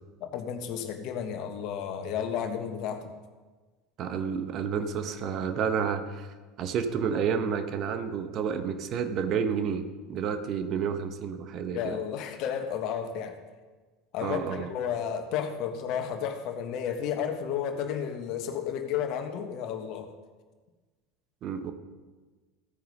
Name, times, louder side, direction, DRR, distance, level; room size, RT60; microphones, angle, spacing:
voice 1, 0.2-3.0 11.7-13.3 14.1-20.1, left 8 dB, 50° left, 6 dB, 1.5 m, -32 dB
voice 2, 4.0-6.3 6.6-12.0 14.2-14.7 21.4-21.7, right 7 dB, 45° right, 8 dB, 1.2 m, -30 dB
14.5 x 9.4 x 5.4 m, 1.3 s
figure-of-eight pair, 70°, 0 cm